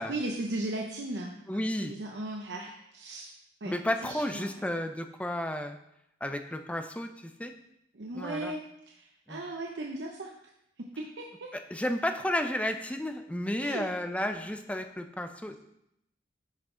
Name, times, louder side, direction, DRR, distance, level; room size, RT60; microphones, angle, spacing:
voice 1, 0.0-3.3 3.6-3.7 4.0-4.5 7.9-10.3 10.8-11.5 13.6-13.9, right 2 dB, 75° right, 0 dB, 0.8 m, -37 dB
voice 2, 1.5-1.9 3.6-5.8 6.2-7.5 8.1-8.5 9.3-9.4 11.7-15.6, left 1 dB, 5° left, 6 dB, 0.6 m, -32 dB
10.5 x 6.0 x 3.8 m, 0.80 s
head